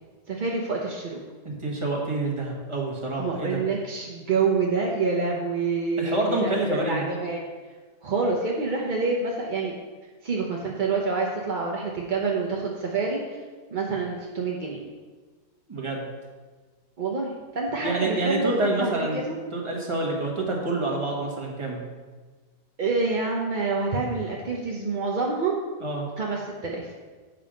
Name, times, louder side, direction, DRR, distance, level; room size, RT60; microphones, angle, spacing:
voice 1, 0.3-1.2 3.2-7.4 8.0-9.7 10.2-13.4 13.7-14.8 17.0-19.4 22.8-25.6 26.2-26.9, right 4 dB, 45° right, -2 dB, 0.6 m, -27 dB
voice 2, 1.4-3.6 6.0-7.0 15.7-16.0 17.8-19.2 19.5-21.8 25.8-26.0, right 2 dB, 20° right, -2 dB, 1.3 m, -27 dB
7.7 x 5.5 x 5.1 m, 1.4 s
omnidirectional pair, 1.8 m